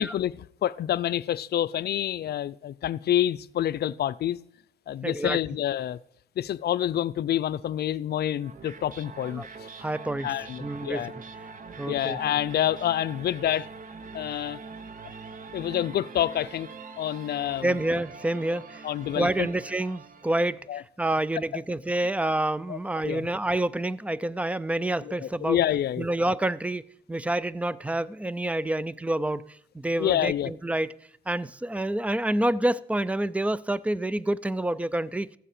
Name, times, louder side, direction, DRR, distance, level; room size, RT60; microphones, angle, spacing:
voice 1, 0.0-4.4 4.9-6.0 6.4-9.7 10.2-11.1 11.9-13.7 14.1-14.6 15.5-16.7 17.0-17.8 18.8-19.5 20.7-20.8 22.0-22.1 22.7-22.8 23.0-23.3 25.0-26.1 30.0-30.5, left 11 dB, 55° left, 0.5 m, -28 dB
voice 2, 5.0-5.4 9.4-9.5 9.8-10.3 10.6-11.1 11.8-12.2 17.6-18.8 19.2-25.6 26.0-26.8 27.1-29.5 29.7-30.9 31.3-35.3, right 1 dB, 5° right, 0.4 m, -28 dB
sound 1, 8.4-20.6, right 4 dB, 45° right, 0.9 m, -43 dB
14.5 x 7.5 x 4.9 m
cardioid pair, 90°, 20 cm